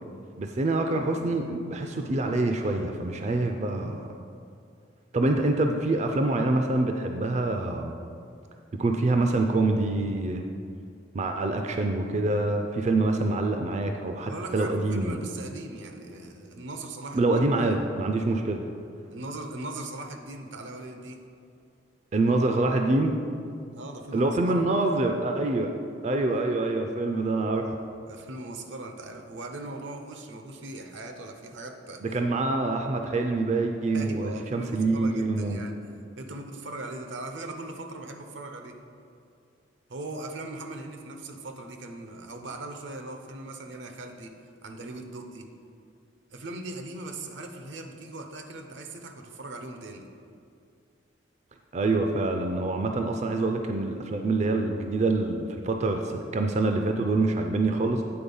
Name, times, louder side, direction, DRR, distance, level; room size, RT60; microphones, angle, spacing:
voice 1, 0.4-4.1 5.1-7.9 8.8-10.4 11.1-15.2 17.1-18.6 22.1-23.2 24.1-25.7 26.0-27.7 32.0-35.6 51.7-58.0, right 2 dB, 40° right, 4 dB, 0.4 m, -26 dB
voice 2, 14.3-17.5 19.1-21.2 23.7-24.6 28.1-32.2 33.9-35.8 36.2-38.8 39.9-45.5 46.3-50.1, right 2 dB, 80° right, 5 dB, 0.7 m, -39 dB
8.6 x 4.1 x 5.4 m, 2.4 s
head